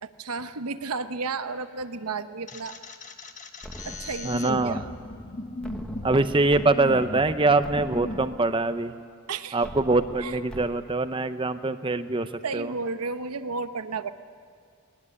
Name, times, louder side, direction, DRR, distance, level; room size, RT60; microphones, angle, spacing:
voice 1, 0.0-2.8 3.8-4.9 9.3-9.7 10.2-10.4 12.4-14.1, right 4 dB, 85° right, 10 dB, 0.9 m, -32 dB
sound 1, 2.5-8.3, left 1 dB, 35° left, 1.3 m, -37 dB
sound 2, 3.6-4.6 5.6-6.7 7.1-7.2 7.6-8.6 9.6-10.7, equal, 5° left, 1.2 m, -42 dB
voice 2, 4.2-4.8 6.0-8.9 9.5-12.7, right 2 dB, 20° right, 11 dB, 0.7 m, -24 dB
21.0 x 18.5 x 9.7 m, 2.2 s
head